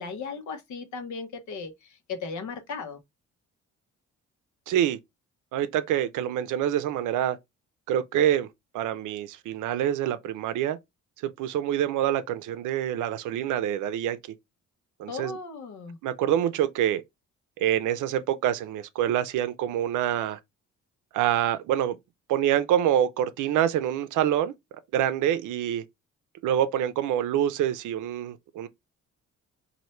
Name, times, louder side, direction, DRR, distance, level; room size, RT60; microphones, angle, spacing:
voice 1, 0.0-3.0 15.1-16.0, left 5 dB, 75° left, 1.1 m, -36 dB
voice 2, 4.7-5.0 5.5-7.4 7.9-8.5 8.7-10.8 11.2-14.2 15.0-15.4 16.0-17.0 17.6-20.4 21.1-22.0 22.3-24.5 24.9-25.8 26.4-28.7, right 11 dB, 80° right, 0.5 m, -26 dB
3.1 x 2.7 x 4.2 m
cardioid pair, 90°, 30 cm